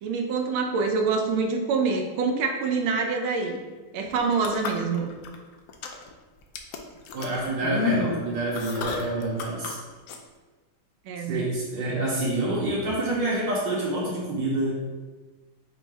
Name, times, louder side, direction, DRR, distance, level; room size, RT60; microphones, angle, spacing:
voice 1, 0.0-3.6 3.9-5.1 11.1-11.4, right 4 dB, 90° right, 2 dB, 1.5 m, -26 dB
sound 1, 4.1-5.4 5.7-6.1 6.5-9.7 10.1-10.2, left 5 dB, 80° left, 0.9 m, -30 dB
voice 2, 7.1-9.8 11.3-14.7, right 2 dB, 70° right, -4 dB, 1.3 m, -27 dB
5.5 x 2.1 x 4.5 m, 1.3 s
omnidirectional pair, 2.2 m